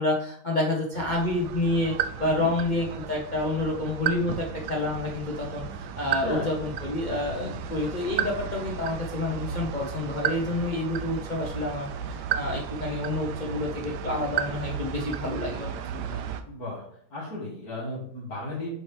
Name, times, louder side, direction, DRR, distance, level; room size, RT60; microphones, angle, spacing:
voice 1, 0.0-16.2, left 2 dB, 80° left, -2 dB, 0.4 m, -29 dB
sound 1, 0.9-16.4, right 8 dB, 75° right, 1.0 m, -34 dB
voice 2, 6.1-6.5 7.4-7.6 16.4-16.8 17.1-18.7, left 2 dB, 45° left, -11 dB, 2.7 m, -34 dB
7.5 x 4.5 x 3.4 m, 0.66 s
omnidirectional pair, 2.3 m